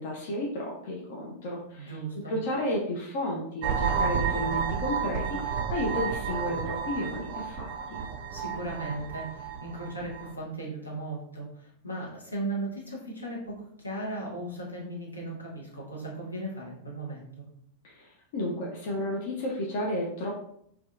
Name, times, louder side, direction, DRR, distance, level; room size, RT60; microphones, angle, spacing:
voice 1, 0.0-2.0 2.3-8.0 17.8-20.3, left 1 dB, 50° left, -2 dB, 0.4 m, -32 dB
voice 2, 1.8-2.3 8.3-17.5, right 2 dB, 80° left, -3 dB, 0.7 m, -37 dB
sound 1, 3.6-10.3, right 6 dB, 45° right, 0.4 m, -31 dB
2.6 x 2.2 x 2.3 m, 0.71 s
figure-of-eight pair, 90°, 0 cm